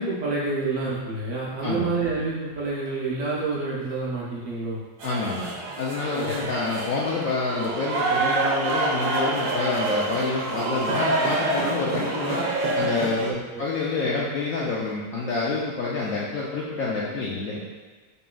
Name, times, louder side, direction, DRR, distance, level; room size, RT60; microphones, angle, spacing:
voice 1, 0.0-4.8 6.1-6.5 13.2-13.6, right 3 dB, 60° right, -6 dB, 0.8 m, -28 dB
voice 2, 5.0-5.5 5.8-12.5 12.7-17.6, left 3 dB, 75° left, -5 dB, 0.7 m, -27 dB
sound 1, 5.0-13.3, right 2 dB, 85° right, 1.4 m, -27 dB
5.3 x 3.0 x 2.2 m, 1.3 s
omnidirectional pair, 2.0 m